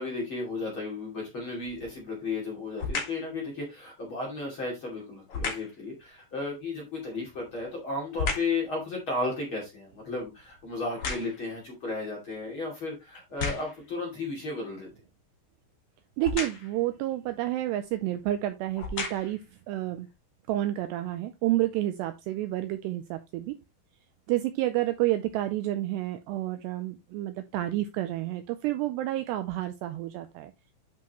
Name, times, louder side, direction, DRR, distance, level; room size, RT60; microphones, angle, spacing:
voice 1, 0.0-14.9, left 3 dB, 35° left, 2.6 m, -34 dB
sound 1, 1.6-2.0 2.8-3.3 5.3-5.8 7.2-8.6 9.1-11.6 12.3-12.4 13.1-13.9 16.2-16.8 17.8-18.0 18.6-19.5 20.1-20.2, left 4 dB, 65° left, 1.4 m, -35 dB
voice 2, 16.2-19.4 19.7-20.1 20.5-23.6 24.3-30.5, right 15 dB, 85° right, 2.4 m, -30 dB
10.0 x 5.7 x 3.0 m
omnidirectional pair, 5.5 m